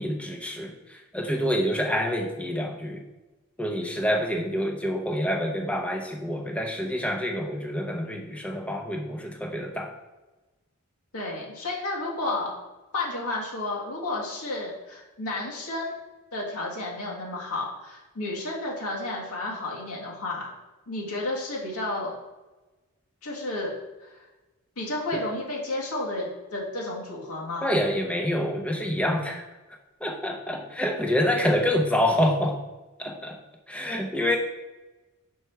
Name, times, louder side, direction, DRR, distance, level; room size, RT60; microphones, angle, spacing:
voice 1, 0.0-3.0 3.6-9.9 27.6-29.4 30.0-32.6 33.0-33.4 33.7-34.4, equal, 5° left, 2 dB, 0.6 m, -27 dB
voice 2, 11.1-12.5 12.9-16.0 16.3-20.5 20.9-22.1 23.2-23.7 24.0-24.2 24.8-27.8, left 2 dB, 90° left, -3 dB, 1.8 m, -32 dB
4.6 x 4.4 x 5.6 m, 1.1 s
head